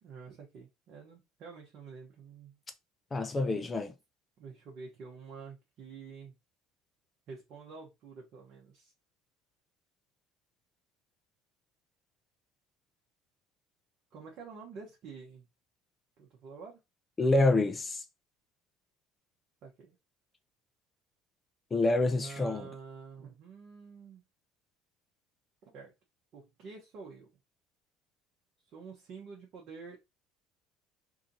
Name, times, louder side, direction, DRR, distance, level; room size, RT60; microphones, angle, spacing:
voice 1, 0.0-2.6 4.4-6.3 7.3-8.9 14.1-15.5 16.2-16.8 19.6-20.0 22.2-24.2 25.7-25.9 26.3-27.3 28.7-30.2, right 5 dB, 60° right, 0.9 m, -48 dB
voice 2, 3.1-3.9 17.2-18.0 21.7-22.7, left 2 dB, 25° left, 0.6 m, -27 dB
2.8 x 2.4 x 2.6 m
hypercardioid pair, 70°, 0 cm